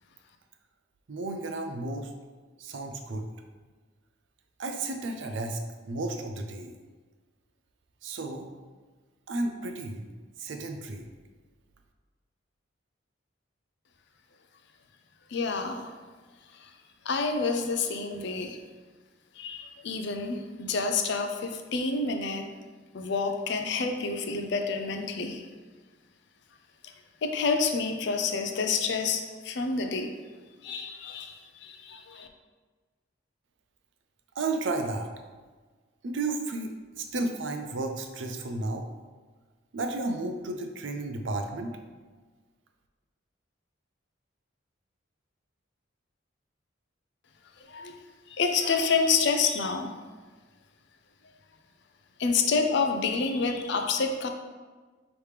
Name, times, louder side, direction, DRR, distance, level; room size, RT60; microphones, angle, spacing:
voice 1, 1.1-2.1 2.6-3.2 4.6-5.6 5.8-6.7 8.0-8.5 9.3-10.1 10.4-11.1 34.4-35.1 36.0-38.8 39.7-41.7, right 2 dB, 70° right, 5 dB, 0.5 m, -32 dB
voice 2, 15.3-16.0 16.5-16.7 17.0-18.6 19.4-22.4 22.9-25.5 26.8-26.9 27.2-30.1 30.6-32.3 47.7-49.9 52.2-54.3, left 4 dB, 60° left, 5 dB, 0.5 m, -28 dB
5.0 x 3.1 x 3.2 m, 1.4 s
head